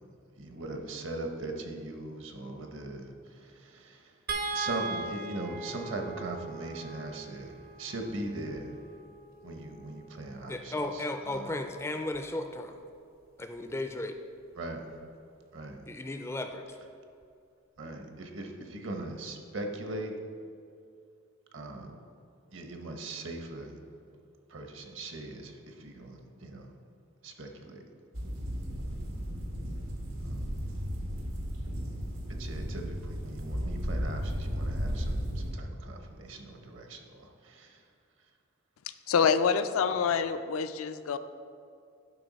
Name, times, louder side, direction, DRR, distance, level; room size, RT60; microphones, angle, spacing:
voice 1, 0.4-3.1 3.9-4.0 4.5-8.7 9.4-10.7 11.3-11.4 14.6-14.8 15.5-15.8 17.8-20.1 21.5-21.9 22.5-23.8 24.5-25.5 25.8-26.7 27.2-27.8 30.2-30.3 32.4-35.2 35.5-37.0 37.6-37.7, right 2 dB, 60° right, 4 dB, 1.0 m, -39 dB
sound 1, 4.3-10.6 12.1-12.3 12.7-12.8, right 3 dB, 45° right, 0.6 m, -39 dB
voice 2, 10.5-12.8 13.4-14.2 15.9-16.7, left 2 dB, 10° left, 6 dB, 0.3 m, -35 dB
sound 2, 28.1-35.5, equal, 85° right, 1.4 m, -34 dB
voice 3, 39.1-41.2, left 6 dB, 80° left, 10 dB, 0.4 m, -26 dB
11.0 x 5.3 x 4.1 m, 2.4 s
head